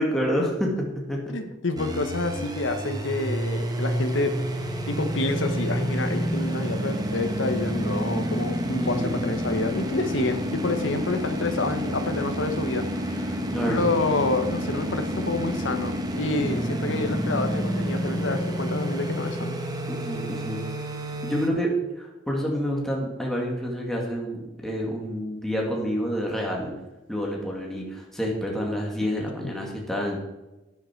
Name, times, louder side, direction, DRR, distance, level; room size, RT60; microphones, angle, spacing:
voice 1, 0.0-1.3 8.8-9.2 13.5-13.9 19.9-20.6 21.2-26.7 27.1-30.2, equal, ahead, -2 dB, 2.2 m, -28 dB
voice 2, 1.3-4.4 4.9-13.4 13.7-19.6 29.4-29.5, left 2 dB, 80° left, 7 dB, 1.1 m, -28 dB
sound 1, 1.8-21.5, equal, 20° right, 1.1 m, -29 dB
11.5 x 9.7 x 4.6 m, 1.0 s
head